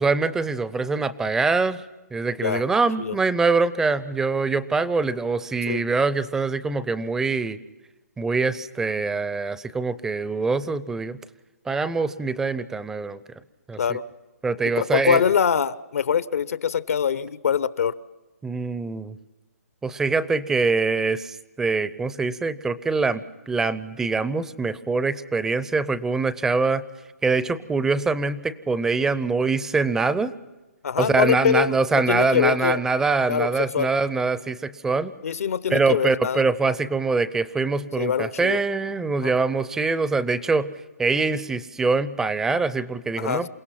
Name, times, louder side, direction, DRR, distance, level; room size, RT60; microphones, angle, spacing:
voice 1, 0.0-1.8 2.1-7.6 8.2-11.2 11.7-13.2 13.7-14.0 14.4-15.2 18.4-19.2 19.8-26.8 27.2-30.3 31.0-35.1 35.7-40.7 41.0-43.5, right 4 dB, 5° right, 15 dB, 0.6 m, -24 dB
voice 2, 14.7-17.9 30.8-32.8 33.3-33.9 35.2-36.4 38.0-38.6 39.2-39.3 43.2-43.5, left 8 dB, 65° left, 16 dB, 0.8 m, -24 dB
28.5 x 17.0 x 5.8 m, 1.1 s
hypercardioid pair, 150°, 8 cm